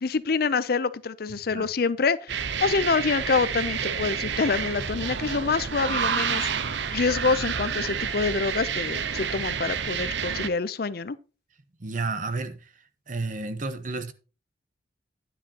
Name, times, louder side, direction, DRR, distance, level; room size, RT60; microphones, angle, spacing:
voice 1, 0.0-11.2, left 4 dB, 55° left, 0.5 m, -26 dB
sound 1, 2.3-10.5, right 7 dB, 80° right, 0.7 m, -29 dB
voice 2, 11.8-12.6 13.1-14.1, right 3 dB, 45° right, 1.1 m, -31 dB
10.0 x 9.4 x 2.9 m
head